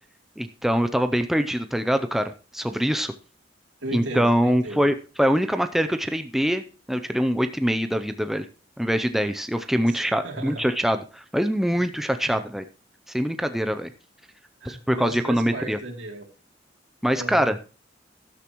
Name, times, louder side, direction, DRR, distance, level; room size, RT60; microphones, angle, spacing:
voice 1, 0.4-3.1 3.9-8.5 8.8-12.6 13.1-13.9 14.6-15.8 17.0-17.6, equal, ahead, 8 dB, 0.5 m, -24 dB
voice 2, 3.8-4.9 9.9-10.7 12.2-12.4 14.6-16.3 17.1-17.6, right 1 dB, 80° right, 2 dB, 3.0 m, -35 dB
13.0 x 12.0 x 3.0 m, 0.35 s
head